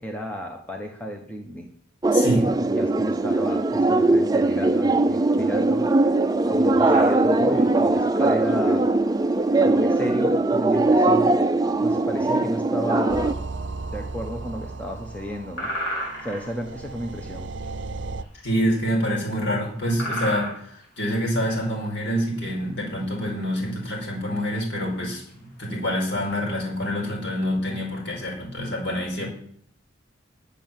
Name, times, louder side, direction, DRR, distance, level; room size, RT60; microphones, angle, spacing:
voice 1, 0.0-1.7 2.3-5.8 6.5-8.8 9.6-11.3 11.8-13.3 13.9-15.7 16.2-17.5, equal, 5° left, 2 dB, 1.1 m, -32 dB
sound 1, 2.0-13.3, right 2 dB, 20° right, 0.5 m, -20 dB
voice 2, 2.1-2.5 18.4-29.3, equal, 60° left, -2 dB, 5.4 m, -26 dB
sound 2, 6.9-26.8, equal, 90° left, 4.7 m, -38 dB
sound 3, 13.1-18.2, right 3 dB, 60° right, 0.6 m, -35 dB
10.0 x 8.3 x 7.5 m, 0.63 s
head